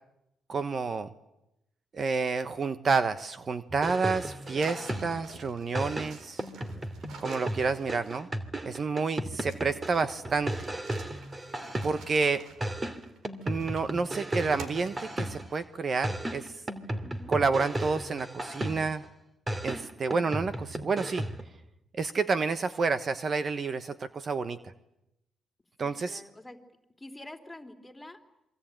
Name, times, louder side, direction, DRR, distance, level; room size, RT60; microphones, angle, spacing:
voice 1, 0.5-1.1 1.9-6.4 7.2-8.3 8.6-10.5 11.8-12.5 13.5-16.6 17.3-19.0 19.6-21.2 21.9-24.6 25.8-26.2, right 4 dB, 40° right, 11 dB, 1.2 m, -29 dB
sound 1, 3.7-5.3 5.7-12.2 12.6-15.6 16.0-19.0 19.5-21.5, right 1 dB, 25° right, 2.8 m, -35 dB
sound 2, 4.6-8.5 9.3-14.0 14.6-15.6, right 4 dB, 75° right, 4.2 m, -50 dB
voice 2, 25.8-26.6 27.0-28.3, left 1 dB, 10° left, 4 dB, 3.5 m, -47 dB
27.5 x 24.0 x 9.1 m, 0.87 s
cardioid pair, 90°, 0 cm